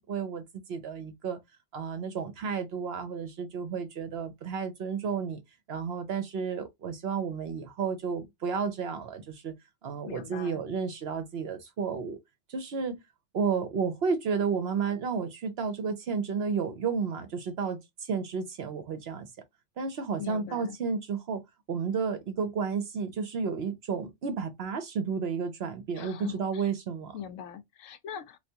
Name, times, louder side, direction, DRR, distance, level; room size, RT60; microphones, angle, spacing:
voice 1, 0.1-0.4 0.7-1.4 1.7-5.4 5.7-9.5 9.8-12.2 12.5-13.0 13.3-19.3 19.8-21.4 21.7-27.2, right 5 dB, 60° right, 0.8 m, -32 dB
voice 2, 10.1-10.6 20.2-20.8 26.0-26.7 27.1-28.4, left 8 dB, 80° left, 1.0 m, -41 dB
3.3 x 2.4 x 2.7 m
omnidirectional pair, 1.4 m